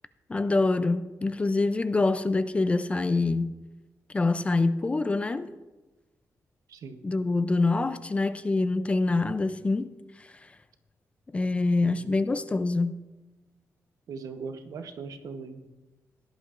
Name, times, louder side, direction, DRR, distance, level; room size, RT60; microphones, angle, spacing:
voice 1, 0.3-3.6 4.1-5.5 7.0-9.9 10.2-10.3 11.3-12.9, left 3 dB, 20° left, 0.4 m, -25 dB
voice 2, 6.7-7.0 11.8-12.2 14.1-15.6, right 5 dB, 70° right, 0.9 m, -40 dB
17.5 x 11.0 x 2.5 m
wide cardioid pair, 155°, 6 cm